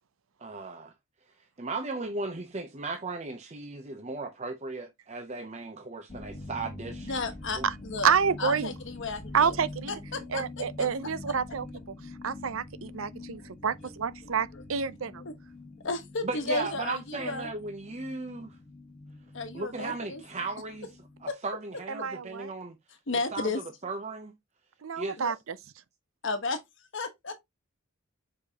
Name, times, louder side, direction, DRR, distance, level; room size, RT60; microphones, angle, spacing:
voice 1, 0.4-0.9 1.6-7.1 7.6-7.7 16.2-18.5 19.5-20.9 21.2-22.8 23.3-23.5 23.8-24.3 25.0-25.2, right 3 dB, 35° right, 0.7 m, -36 dB
sound 1, 6.1-21.3, left 2 dB, 35° left, 1.2 m, -45 dB
voice 2, 7.0-8.1 8.4-9.5 9.9-10.9 14.5-14.6 15.2-15.3 15.8-17.5 19.3-20.2 21.3-21.4 22.0-22.1 23.1-23.6 25.2-25.3 26.2-26.6 26.9-27.3, left 3 dB, 60° left, 1.1 m, -33 dB
voice 3, 8.0-8.7 9.3-9.9 10.3-11.7 12.2-15.2 21.9-22.5 24.8-25.6, right 6 dB, 75° right, 0.6 m, -28 dB
7.1 x 5.0 x 2.8 m
head